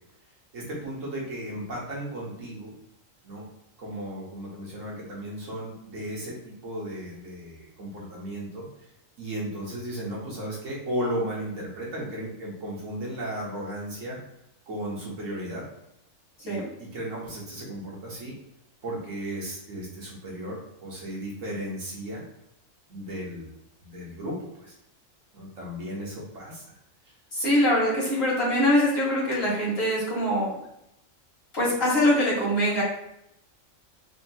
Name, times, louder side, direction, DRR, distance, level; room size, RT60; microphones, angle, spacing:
voice 1, 0.5-2.7 3.2-3.5 3.8-8.7 9.2-14.2 14.7-15.7 16.4-18.4 18.8-22.2 22.9-24.7 25.3-26.6, right 1 dB, 70° right, -4 dB, 1.5 m, -35 dB
voice 2, 27.3-30.5 31.5-32.8, left 1 dB, 50° left, -6 dB, 1.8 m, -23 dB
4.2 x 2.8 x 2.8 m, 0.79 s
omnidirectional pair, 1.4 m